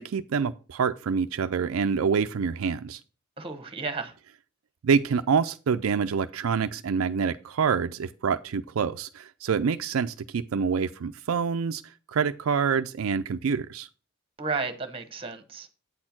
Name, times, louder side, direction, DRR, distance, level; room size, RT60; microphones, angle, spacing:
voice 1, 0.0-3.0 4.8-11.8 12.1-13.9, right 6 dB, 75° right, 0.4 m, -26 dB
voice 2, 3.4-4.1 14.4-15.7, right 4 dB, 25° right, 1.1 m, -32 dB
8.5 x 4.4 x 5.8 m
head